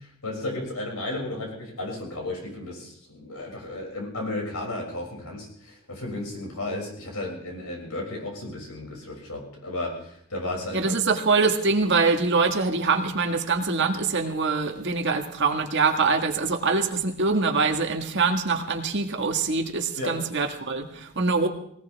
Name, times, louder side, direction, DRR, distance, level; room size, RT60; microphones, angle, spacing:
voice 1, 0.0-11.1 20.0-20.2, left 2 dB, 90° left, 0 dB, 6.6 m, -34 dB
voice 2, 10.7-21.5, right 4 dB, 55° right, 3 dB, 1.9 m, -24 dB
19.5 x 19.0 x 3.6 m, 0.69 s
head